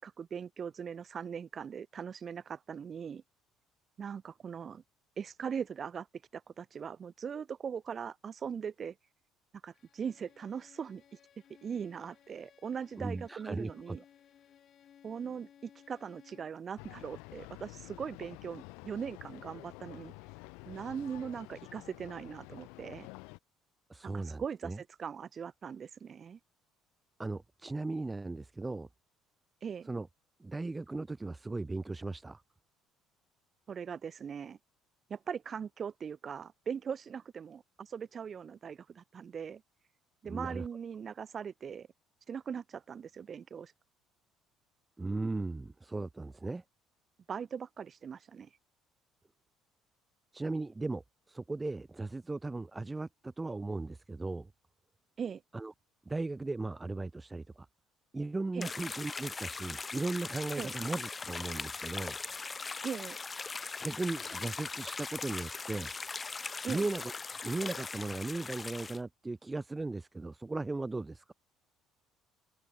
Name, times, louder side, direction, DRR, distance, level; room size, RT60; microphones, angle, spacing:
voice 1, 0.0-3.2 4.0-4.8 5.2-6.1 6.3-8.9 9.6-11.0 11.6-14.0 15.0-20.1 20.7-23.1 24.0-26.4 29.6-29.9 33.7-34.6 35.1-39.6 40.2-41.9 42.3-43.7 47.3-48.5 55.2-55.4 58.5-58.7 60.6-60.7 62.8-63.2 66.6-66.8, right 7 dB, 45° right, 4.5 m, -40 dB
Bowed string instrument, 9.7-16.6, left 9 dB, 55° left, 7.5 m, -61 dB
voice 2, 13.0-14.0 23.9-24.8 27.2-28.9 29.9-30.1 30.4-32.4 40.2-40.7 45.0-46.6 50.3-54.5 55.5-55.7 56.1-57.7 58.1-62.2 63.8-65.9 66.7-67.1 67.4-71.3, right 3 dB, 20° right, 1.0 m, -37 dB
sound 1, 16.8-23.4, left 32 dB, 85° left, 7.1 m, -49 dB
sound 2, 58.6-69.0, left 4 dB, 30° left, 1.9 m, -40 dB
open air
supercardioid pair, 80°, 0 cm